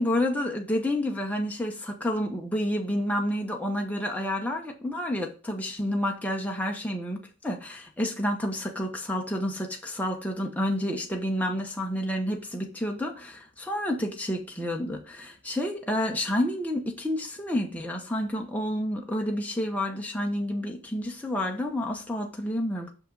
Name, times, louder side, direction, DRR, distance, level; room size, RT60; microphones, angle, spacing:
voice 1, 0.0-22.9, left 1 dB, 5° left, 1 dB, 0.9 m, -29 dB
6.0 x 5.5 x 3.9 m, 0.35 s
head